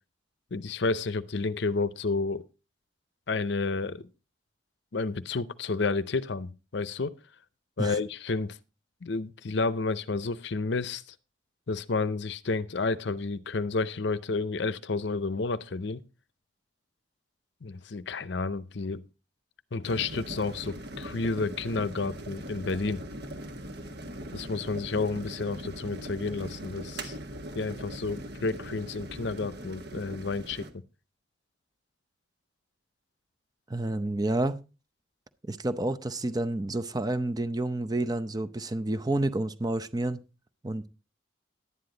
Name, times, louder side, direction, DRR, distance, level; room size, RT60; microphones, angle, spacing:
voice 1, 0.5-2.4 3.3-4.1 4.9-7.1 7.8-8.6 9.0-11.0 11.7-16.0 17.6-19.0 19.7-23.1 24.3-27.2 27.5-30.7, left 3 dB, 60° left, 0.6 m, -30 dB
sound 1, 19.8-30.7, right 1 dB, 55° right, 1.5 m, -40 dB
voice 2, 33.7-34.6 35.5-40.2 40.6-40.9, right 2 dB, 20° right, 0.6 m, -29 dB
11.5 x 9.7 x 3.9 m
head